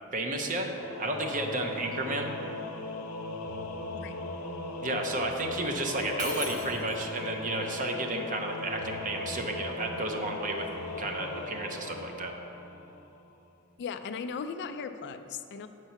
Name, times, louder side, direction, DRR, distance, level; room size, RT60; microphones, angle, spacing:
voice 1, 0.1-0.7 1.0-2.3 4.8-10.7 11.0-12.3, right 2 dB, 40° right, 3 dB, 0.7 m, -32 dB
Singing / Musical instrument, 0.7-13.2, left 2 dB, 85° left, 0.8 m, -38 dB
Shatter, 6.2-7.2, equal, 15° right, 1.1 m, -39 dB
voice 2, 13.8-15.7, left 5 dB, 55° left, 9 dB, 0.3 m, -38 dB
8.0 x 4.5 x 5.7 m, 2.8 s
head